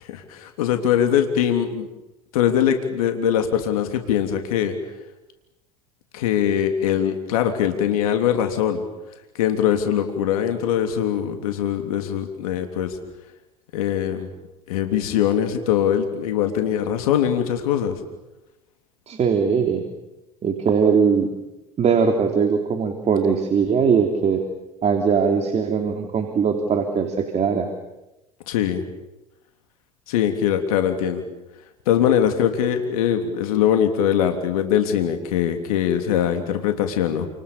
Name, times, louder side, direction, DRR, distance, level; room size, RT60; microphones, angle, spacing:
voice 1, 0.0-1.9 2.3-4.8 6.1-8.8 9.3-13.0 13.7-14.3 14.7-18.0 28.5-28.8 30.1-31.2 31.9-37.3, left 9 dB, 80° left, 6 dB, 3.3 m, -22 dB
voice 2, 19.1-19.8 20.4-21.3 21.8-24.4 24.8-27.7, right 6 dB, 40° right, 4 dB, 3.7 m, -20 dB
29.5 x 27.5 x 7.0 m, 1.0 s
hypercardioid pair, 90°, 18 cm